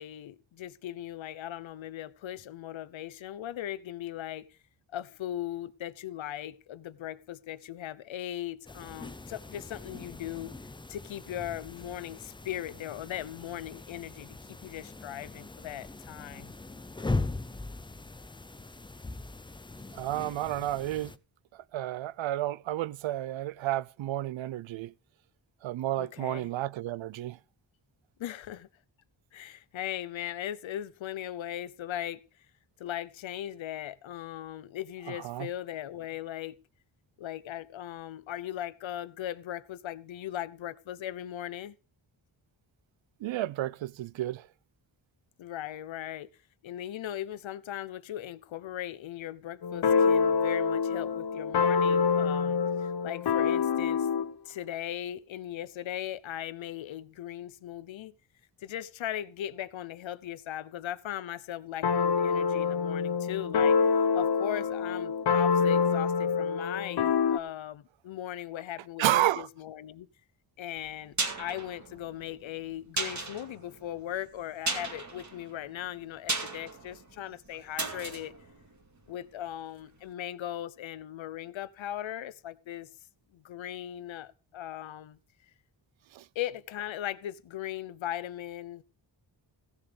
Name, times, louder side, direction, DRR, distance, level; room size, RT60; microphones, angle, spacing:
voice 1, 0.0-4.6 4.9-10.5 10.9-16.5 26.0-26.5 28.2-28.7 29.3-32.2 32.8-36.6 37.2-41.8 45.4-46.3 46.6-54.1 54.5-58.1 58.6-63.8 64.1-70.1 70.6-78.3 79.1-82.9 83.3-85.2 86.3-88.8, left 12 dB, 80° left, 0.9 m, -38 dB
sound 1, 8.6-21.2, left 2 dB, 10° left, 0.5 m, -40 dB
voice 2, 19.9-21.1 21.7-24.9 25.6-27.4 35.2-35.5 43.2-44.4 69.0-69.5 86.1-86.2, right 14 dB, 80° right, 0.6 m, -31 dB
sound 2, 49.6-54.3 61.8-67.4, left 6 dB, 60° left, 1.0 m, -26 dB
sound 3, 70.8-79.6 79.9-80.0, right 3 dB, 40° right, 2.4 m, -37 dB
16.0 x 7.1 x 5.1 m
wide cardioid pair, 120°, 46 cm